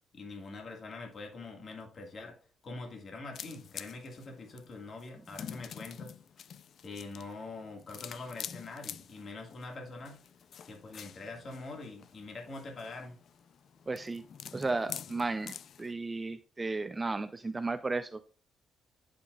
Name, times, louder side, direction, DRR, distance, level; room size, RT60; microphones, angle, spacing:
voice 1, 0.1-2.4 2.6-6.1 6.8-10.2 10.6-13.2, left 3 dB, 45° left, 2 dB, 1.8 m, -44 dB
sound 1, 3.3-15.9, left 8 dB, 60° left, 0.4 m, -47 dB
voice 2, 13.9-14.2 14.5-15.5 15.8-18.2, right 3 dB, 25° right, 11 dB, 0.4 m, -34 dB
12.0 x 5.2 x 2.4 m, 0.40 s
cardioid pair, 90°, 0 cm